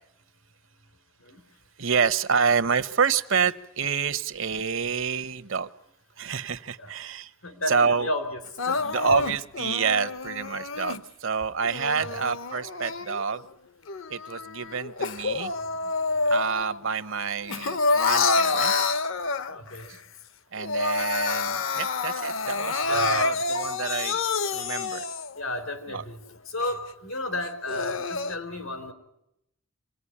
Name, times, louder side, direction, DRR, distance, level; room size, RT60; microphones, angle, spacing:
voice 1, 1.8-5.7 6.2-7.3 7.7-8.1 8.8-13.5 14.1-15.5 16.3-19.1 19.6-19.8 20.5-24.2 24.5-25.0 25.9-26.0, right 6 dB, 65° right, 12 dB, 1.0 m, -28 dB
voice 2, 7.4-8.4 8.7-8.9 11.9-12.2 19.5-19.9 22.8-23.8 25.4-26.2 26.5-28.9, left 1 dB, 80° left, 9 dB, 4.1 m, -33 dB
Crying sobbing, 8.6-11.0 11.6-13.4 13.9-16.8 17.1-19.8 20.2-20.3 20.6-25.4 25.9-26.0 26.6-26.7 27.4-28.4, left 4 dB, 65° left, 0.9 m, -28 dB
27.0 x 19.0 x 9.9 m, 0.82 s
head